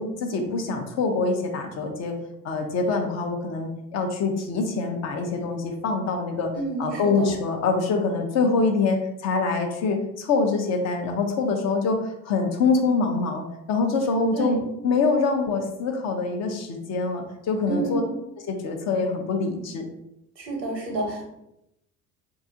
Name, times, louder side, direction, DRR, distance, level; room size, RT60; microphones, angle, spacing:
voice 1, 0.0-2.2 2.4-6.5 6.8-14.6 14.8-18.0 18.5-19.9, left 4 dB, 35° left, 3 dB, 0.5 m, -25 dB
voice 2, 6.5-7.3 14.3-14.6 17.7-18.1 20.4-21.3, right 2 dB, 85° right, 2 dB, 0.8 m, -29 dB
3.5 x 2.3 x 2.6 m, 0.83 s
figure-of-eight pair, 60°, 49 cm